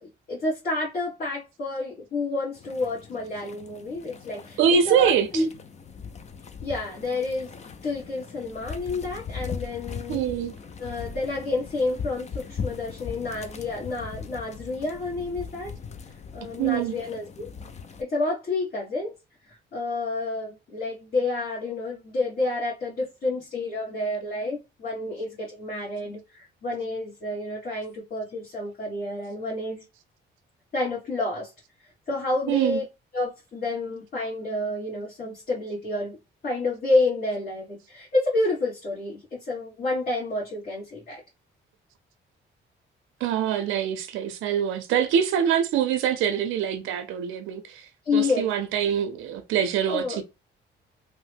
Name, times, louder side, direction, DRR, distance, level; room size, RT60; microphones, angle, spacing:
voice 1, 0.0-5.5 6.6-7.5 7.8-10.2 10.8-15.7 16.3-17.5 18.0-19.1 19.5-29.8 30.7-31.5 32.1-32.8 33.1-36.2 36.4-41.2 48.0-48.5 49.9-50.2, left 2 dB, 50° left, 1.5 m, -29 dB
sound 1, 2.6-18.0, left 6 dB, 35° left, 0.5 m, -39 dB
voice 2, 4.6-5.3 10.1-10.5 16.6-16.9 32.5-32.8 43.2-47.9 48.1-50.2, right 8 dB, 90° right, 0.5 m, -24 dB
2.9 x 2.1 x 3.3 m
cardioid pair, 90°, 20 cm